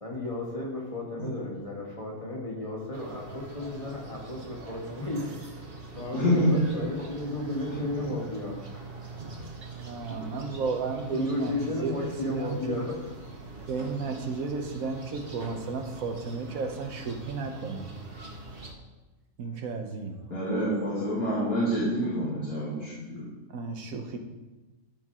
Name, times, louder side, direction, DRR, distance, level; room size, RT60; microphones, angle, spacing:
voice 1, 0.0-5.4 5.9-8.6 11.1-13.0, left 2 dB, 20° left, -3 dB, 1.7 m, -33 dB
sound 1, 2.9-18.7, right 3 dB, 40° right, 1.3 m, -43 dB
voice 2, 6.1-6.6 8.0-8.1 20.3-23.3, equal, 70° left, -9 dB, 2.6 m, -27 dB
voice 3, 9.6-12.8 13.7-17.9 19.4-20.1 23.5-24.2, right 4 dB, 65° right, 4 dB, 1.3 m, -33 dB
13.0 x 4.6 x 3.7 m, 1.1 s
omnidirectional pair, 1.6 m